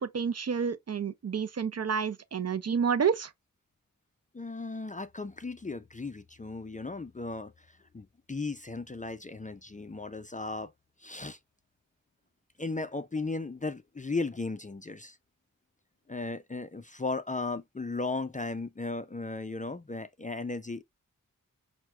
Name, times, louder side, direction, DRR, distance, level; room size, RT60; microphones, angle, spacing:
voice 1, 0.0-3.3, right 6 dB, 50° right, 0.4 m, -29 dB
voice 2, 4.3-7.5 7.9-10.7 11.0-11.4 12.6-15.2 16.1-20.8, left 3 dB, 25° left, 0.3 m, -36 dB
5.8 x 2.1 x 2.2 m
wide cardioid pair, 65°, 34 cm